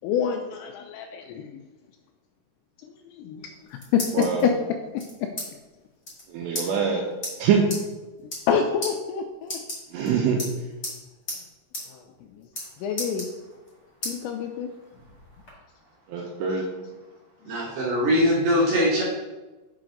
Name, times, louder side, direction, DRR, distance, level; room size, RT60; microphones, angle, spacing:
voice 1, 0.0-1.5 3.2-4.5 4.9-5.3 8.5-9.6 11.9-12.0 12.8-13.3 14.1-14.7, left 7 dB, 85° left, 4 dB, 2.6 m, -27 dB
sound 1, 3.4-4.4 5.0-5.5 5.7-5.8 6.0-6.2 6.5-6.7 7.2-7.3 7.7-7.8 8.2-8.5 8.8-8.9 9.4-10.1 10.4-11.0 11.3-11.4 11.7-11.8 12.1-12.7 13.0-13.7 14.0-14.1 14.6-15.5, left 1 dB, 40° left, 1.3 m, -34 dB
voice 2, 4.1-4.5 6.3-7.0 7.4-7.6 9.9-10.4 16.1-16.7, right 7 dB, 85° right, 1 dB, 2.6 m, -24 dB
voice 3, 17.5-19.0, equal, 70° right, -5 dB, 2.4 m, -21 dB
7.6 x 4.9 x 3.8 m, 1.1 s
omnidirectional pair, 5.5 m